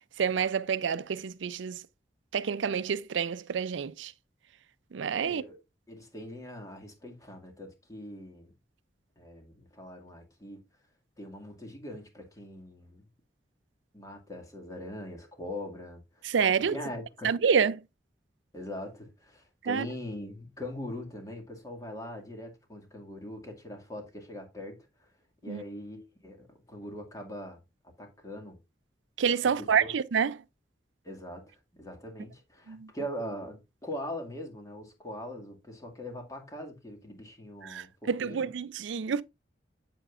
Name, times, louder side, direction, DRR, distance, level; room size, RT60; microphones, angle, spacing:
voice 1, 0.2-1.8 2.3-4.1 4.9-5.4 16.2-16.8 17.2-17.8 19.6-19.9 25.5-25.6 29.2-30.3 32.7-32.8 37.6-39.2, right 6 dB, 85° right, 0.5 m, -28 dB
voice 2, 5.2-5.6 5.9-8.5 9.2-10.6 11.2-13.0 13.9-16.3 16.6-17.4 18.5-25.1 25.4-27.6 28.0-28.6 29.4-29.9 31.0-38.5, left 1 dB, 20° left, 2.1 m, -42 dB
9.0 x 7.7 x 2.5 m
head